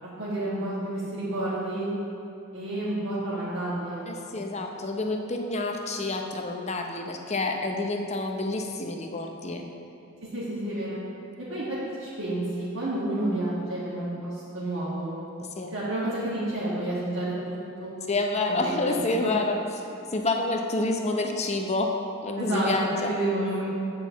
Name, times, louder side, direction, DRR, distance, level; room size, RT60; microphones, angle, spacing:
voice 1, 0.2-1.9 2.5-4.4 10.3-11.0 11.4-15.2 15.7-17.3 17.8-17.9 18.8-18.9 19.2-19.3 22.4-23.7, right 1 dB, 65° right, -9 dB, 1.6 m, -30 dB
voice 2, 4.1-9.6 15.6-15.7 18.1-19.6 20.1-21.9 22.2-23.2, left 2 dB, 30° left, 3 dB, 0.6 m, -28 dB
7.6 x 4.6 x 7.0 m, 2.9 s
head